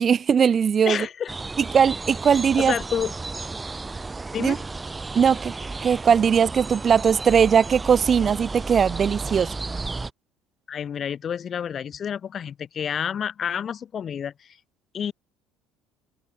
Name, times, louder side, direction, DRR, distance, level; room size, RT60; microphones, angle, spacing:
voice 1, 0.0-1.1 1.7-2.7 4.4-4.6 5.1-5.5 5.8-9.5, right 7 dB, 40° right, 1.0 m, -19 dB
voice 2, 0.8-1.3 2.6-3.1 4.3-4.6 10.7-14.6 14.9-15.1, left 8 dB, 45° left, 2.6 m, -29 dB
sound 1, 1.3-10.1, right 3 dB, 20° right, 1.7 m, -33 dB
supercardioid pair, 80°, 0 cm